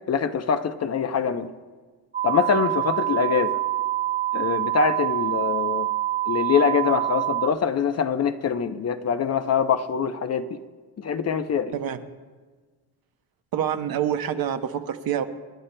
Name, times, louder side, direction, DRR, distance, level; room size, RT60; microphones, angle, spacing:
voice 1, 0.1-1.5 2.2-3.6 4.3-5.9 6.3-10.6 11.0-11.7, left 6 dB, 40° left, 9 dB, 0.6 m, -24 dB
sound 1, 2.1-7.5, right 14 dB, 20° right, 0.5 m, -26 dB
voice 2, 13.5-15.2, right 9 dB, 60° right, 7 dB, 0.9 m, -26 dB
27.0 x 11.5 x 2.2 m, 1.4 s
cardioid pair, 115°, 41 cm